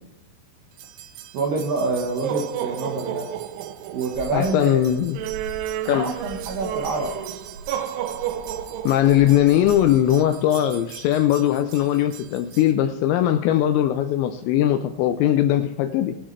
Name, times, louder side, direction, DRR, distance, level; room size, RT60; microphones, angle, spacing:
sound 1, 0.8-12.7, right 11 dB, 90° right, 2.3 m, -33 dB
voice 1, 1.3-3.3 3.9-4.8 5.9-7.1 9.3-9.4, right 3 dB, 75° right, -1 dB, 2.1 m, -26 dB
sound 2, 4.1-10.3, right 1 dB, 45° right, 3.4 m, -42 dB
voice 2, 4.3-5.2 5.9-6.1 8.8-16.2, left 12 dB, 85° left, 8 dB, 2.6 m, -20 dB
20.5 x 7.6 x 3.2 m, 1.0 s
omnidirectional pair, 5.6 m